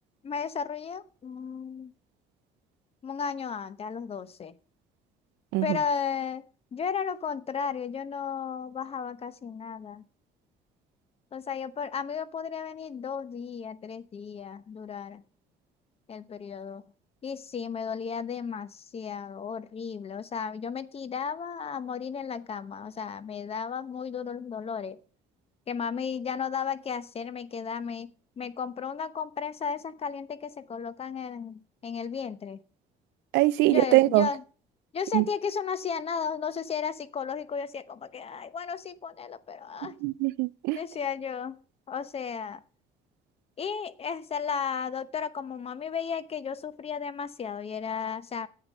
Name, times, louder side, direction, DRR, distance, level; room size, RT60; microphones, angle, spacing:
voice 1, 0.2-1.9 3.0-4.5 5.6-6.4 6.7-10.0 11.3-15.2 16.1-16.8 17.2-25.0 25.7-28.1 28.4-32.6 33.6-34.4 34.9-40.0 40.7-41.6 41.9-42.6 43.6-48.5, left 6 dB, 35° left, 0.9 m, -34 dB
voice 2, 33.3-34.3 35.1-35.2 39.8-40.8, right 19 dB, 90° right, 0.4 m, -23 dB
10.5 x 8.1 x 5.4 m
cardioid pair, 110°, 17 cm